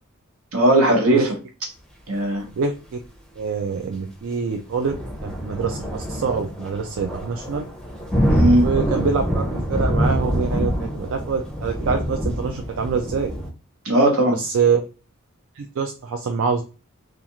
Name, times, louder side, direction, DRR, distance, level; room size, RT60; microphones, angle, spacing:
voice 1, 0.5-1.3 2.1-2.4 8.3-8.7 13.8-14.4, right 1 dB, 85° right, 1 dB, 1.0 m, -17 dB
voice 2, 2.6-3.0 3.4-7.6 8.6-9.4 9.7-13.3 14.3-14.8 15.6-16.6, right 5 dB, 65° right, 4 dB, 0.4 m, -25 dB
sound 1, 4.7-13.5, equal, 5° left, 0.5 m, -25 dB
2.4 x 2.4 x 2.8 m, 0.33 s
head